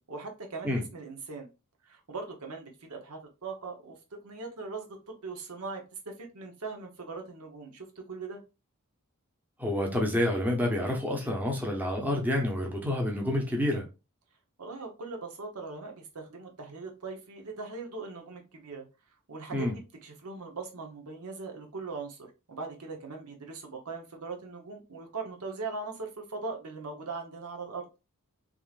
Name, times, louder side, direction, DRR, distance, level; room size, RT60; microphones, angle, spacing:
voice 1, 0.1-1.5 1.8-4.0 4.2-8.4 14.6-18.8 19.3-27.9, right 4 dB, 85° right, 0.9 m, -40 dB
voice 2, 9.6-13.8 19.5-19.7, left 1 dB, 10° right, 0.7 m, -28 dB
3.6 x 3.1 x 2.4 m
head